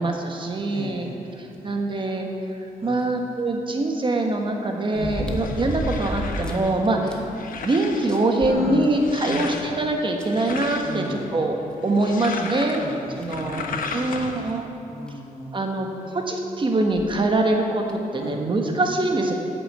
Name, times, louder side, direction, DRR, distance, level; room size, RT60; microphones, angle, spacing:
voice 1, 0.0-1.1 1.4-2.3 2.8-7.1 7.6-11.6 11.8-12.8 13.2-13.6 13.9-14.7 15.5-15.9 16.1-19.3, right 2 dB, 35° right, 2 dB, 1.4 m, -23 dB
voice 2, 0.7-2.0 2.8-3.1 4.9-5.4 6.9-7.3 8.4-8.9 9.2-9.5 10.8-11.3 12.8-14.2 14.9-16.2 18.2-18.4, left 1 dB, 40° left, -2 dB, 1.9 m, -36 dB
sound 1, 3.0-3.1 4.9-6.7 7.1-7.2 7.6-7.7 8.1-9.2 10.2-10.3 11.7-11.8 12.4-12.5 13.2-13.4 14.8-14.9 15.1-15.2 16.9-17.2 17.9-18.0, equal, 5° left, 1.1 m, -31 dB
sound 2, 5.0-14.6, left 4 dB, 75° left, 1.0 m, -36 dB
8.8 x 6.9 x 8.1 m, 2.6 s
cardioid pair, 95°, 14 cm